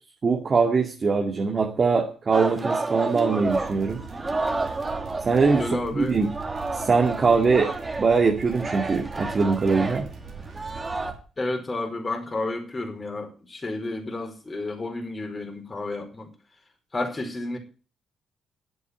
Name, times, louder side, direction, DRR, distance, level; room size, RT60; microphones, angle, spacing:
voice 1, 0.2-4.0 5.2-5.7 5.9-6.3 6.7-7.7 8.0-10.1, right 4 dB, 40° right, 2.4 m, -22 dB
Singing, 2.3-5.9 6.2-11.1, right 3 dB, 20° right, 2.7 m, -30 dB
sound 1, 3.4-11.2, right 5 dB, 85° right, 4.8 m, -42 dB
voice 2, 5.6-6.2 7.5-7.6 11.4-16.3 16.9-17.6, left 2 dB, 25° left, 4.8 m, -31 dB
11.5 x 8.3 x 8.4 m
cardioid pair, 90°, 0 cm